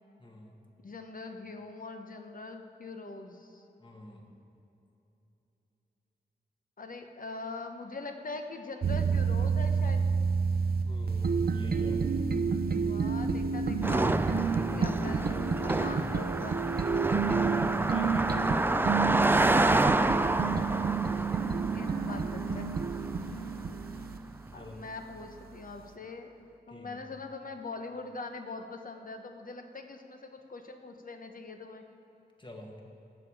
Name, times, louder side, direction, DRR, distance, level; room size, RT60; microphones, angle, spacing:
voice 1, 0.2-0.5 3.8-4.2 10.8-12.1 15.6-15.9 17.1-19.3 23.2-23.8 24.5-24.8 26.7-27.0 32.4-32.8, left 1 dB, 30° left, 1 dB, 1.6 m, -45 dB
voice 2, 0.8-3.6 6.8-10.0 12.8-16.6 21.2-22.7 24.5-31.8, left 3 dB, 55° left, 5 dB, 1.0 m, -43 dB
sound 1, 8.8-24.2, right 5 dB, 65° right, 0.6 m, -29 dB
Car passing by, 13.8-23.4, right 2 dB, 15° right, 0.3 m, -29 dB
18.5 x 7.2 x 4.8 m, 3.0 s
wide cardioid pair, 85°, 17 cm